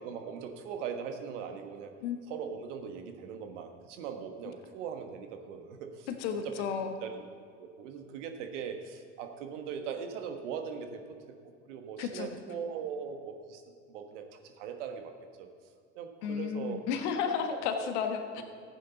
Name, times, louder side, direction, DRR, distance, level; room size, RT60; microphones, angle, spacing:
voice 1, 0.0-1.9 2.3-6.1 6.4-6.5 7.0-7.2 7.6-11.0 11.6-13.6 13.9-15.1 15.4-15.5 15.9-16.8 17.3-17.9, right 7 dB, 65° right, 6 dB, 1.4 m, -40 dB
voice 2, 6.2-7.0 12.0-12.3 16.2-18.4, left 7 dB, 60° left, 6 dB, 1.4 m, -33 dB
14.5 x 9.3 x 4.0 m, 2.3 s
figure-of-eight pair, 75°, 39 cm